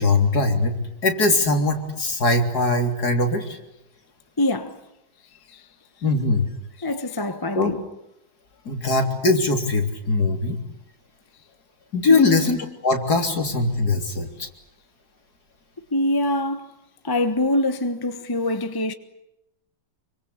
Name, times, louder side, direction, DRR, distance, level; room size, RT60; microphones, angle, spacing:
voice 1, 0.0-3.6 6.0-6.5 7.5-7.7 8.7-10.6 11.9-12.6 12.8-14.5, left 3 dB, 50° left, 3.9 m, -21 dB
voice 2, 4.4-4.8 5.5-5.6 6.8-7.8 12.1-12.4 15.9-16.7 17.0-18.9, left 1 dB, 15° left, 1.0 m, -24 dB
27.0 x 25.0 x 8.3 m
omnidirectional pair, 2.2 m